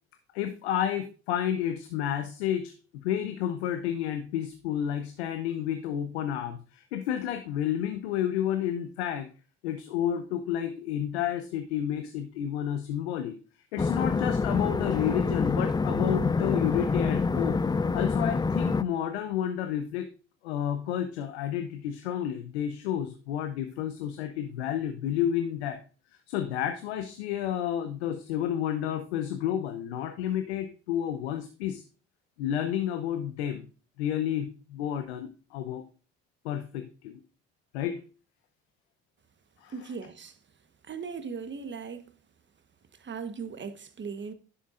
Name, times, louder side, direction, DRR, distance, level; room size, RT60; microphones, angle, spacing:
voice 1, 0.3-9.3 9.6-13.3 13.7-17.6 17.9-20.1 20.4-25.8 26.3-31.8 32.4-33.7 34.0-35.8 36.4-37.2 37.7-38.0 39.6-39.7, left 10 dB, 90° left, 0.7 m, -31 dB
sound 1, 13.8-18.8, left 4 dB, 15° left, 0.4 m, -26 dB
voice 2, 39.7-40.4 40.8-42.1 42.9-44.3, right 5 dB, 35° right, 1.2 m, -38 dB
10.5 x 7.3 x 2.5 m
hypercardioid pair, 55°, 32 cm